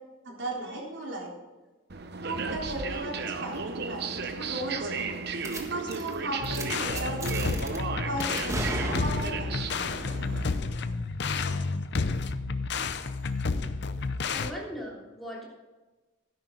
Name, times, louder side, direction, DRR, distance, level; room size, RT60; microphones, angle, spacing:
voice 1, 0.2-1.3 2.2-5.1 5.5-7.6 8.1-9.6, right 1 dB, 70° right, -2 dB, 3.8 m, -36 dB
sound 1, 1.9-10.6, right 4 dB, 55° right, 0.9 m, -34 dB
sound 2, 5.4-5.6 5.9-6.1 6.4-6.6 7.0-7.8 8.2-9.5, right 1 dB, 15° right, 1.5 m, -35 dB
sound 3, 6.4-14.5, left 4 dB, 60° left, 0.6 m, -31 dB
voice 2, 14.3-15.5, equal, ahead, -4 dB, 3.2 m, -38 dB
12.5 x 11.0 x 4.0 m, 1.2 s
head